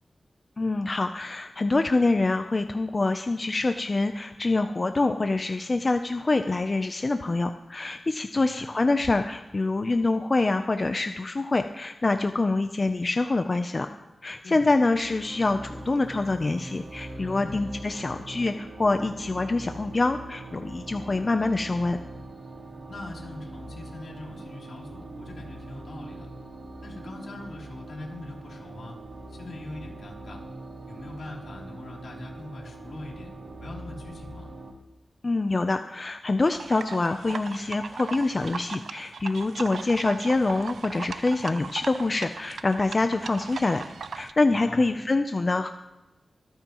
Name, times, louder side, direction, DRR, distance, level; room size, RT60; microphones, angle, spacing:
voice 1, 0.6-13.9 14.2-22.0 35.2-43.8 44.1-45.7, left 3 dB, 35° left, 8 dB, 0.5 m, -25 dB
voice 2, 8.3-8.7 14.4-14.7 17.3-17.6 22.9-26.3 26.8-29.0 29.3-30.4 30.9-33.3 33.6-34.5 44.5-44.9, left 2 dB, 75° left, -2 dB, 3.0 m, -42 dB
sound 1, 14.9-34.7, right 2 dB, 60° right, 1.9 m, -42 dB
sound 2, 36.4-44.3, right 5 dB, 90° right, 0.5 m, -38 dB
25.0 x 9.2 x 3.0 m, 1.1 s
wide cardioid pair, 90°, 0 cm